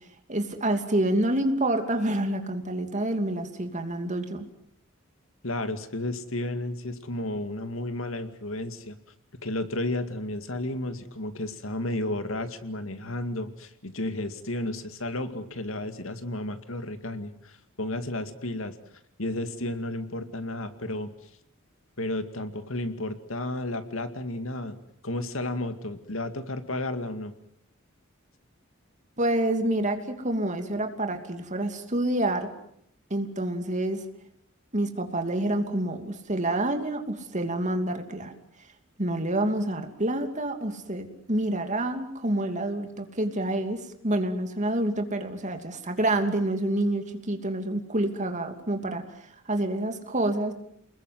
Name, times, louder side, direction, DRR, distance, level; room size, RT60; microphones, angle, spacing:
voice 1, 0.3-4.5 29.2-30.0 30.2-32.5 33.1-34.0 34.7-38.3 39.0-49.0 49.5-50.5, right 1 dB, 35° right, 6 dB, 2.9 m, -27 dB
voice 2, 5.4-9.0 9.4-18.8 19.2-21.1 22.0-24.8 25.0-27.4, left 1 dB, 75° left, 9 dB, 2.3 m, -32 dB
29.5 x 21.0 x 7.9 m, 0.71 s
head